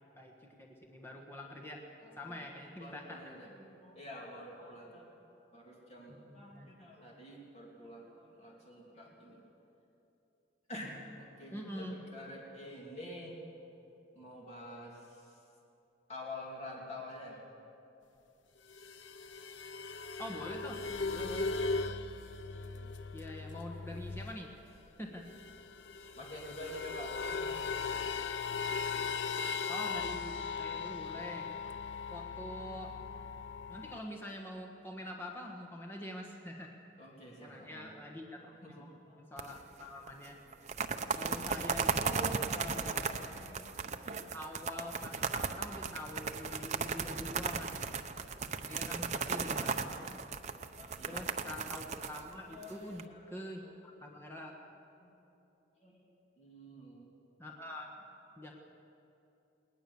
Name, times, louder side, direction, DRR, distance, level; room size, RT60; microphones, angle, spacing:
voice 1, 0.1-1.8 2.2-3.2 6.3-6.7 11.5-12.0 20.2-20.8 21.1-21.5 23.1-24.5 25.0-25.3 29.7-31.5 32.1-33.0 33.7-36.7 37.4-38.9 39.3-40.4 41.2-43.2 44.3-47.9 48.7-50.2 51.1-54.5 57.4-57.9 58.4-58.5, left 1 dB, 10° left, 0 dB, 1.4 m, -45 dB
voice 2, 2.0-2.4 2.8-5.1 5.5-9.4 10.7-13.4 14.1-15.4 16.1-17.4 22.7-22.9 26.1-27.6 32.0-32.1 37.0-38.1 38.4-39.2 39.5-39.6 42.2-43.7 44.0-44.4 45.1-45.2 48.7-49.7 50.8-51.3 52.5-53.9 55.0-55.1 55.8-56.0 56.4-57.1, left 1 dB, 35° left, -3 dB, 2.8 m, -49 dB
sound 1, 18.7-24.5 24.8-24.9 25.1-34.0, left 4 dB, 70° left, 0.7 m, -38 dB
sound 2, 39.4-39.8 40.1-40.2 40.5-53.0, right 5 dB, 35° right, 0.7 m, -36 dB
20.0 x 19.5 x 7.0 m, 2.8 s
head